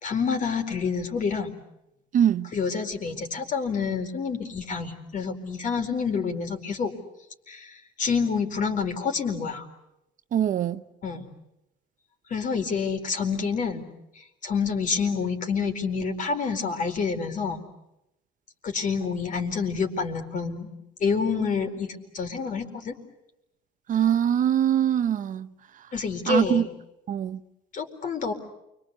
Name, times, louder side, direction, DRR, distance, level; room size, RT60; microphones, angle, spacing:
voice 1, 0.0-1.5 2.5-6.9 7.5-9.7 11.0-11.3 12.3-13.9 14.4-17.6 18.6-20.7 21.0-22.9 25.9-26.7 27.7-28.3, left 5 dB, 50° left, 4.5 m, -28 dB
voice 2, 2.1-2.5 10.3-10.8 23.9-25.5 26.3-26.7 27.1-27.4, right 9 dB, 50° right, 0.9 m, -23 dB
29.5 x 24.0 x 8.3 m
cardioid pair, 110°, 17 cm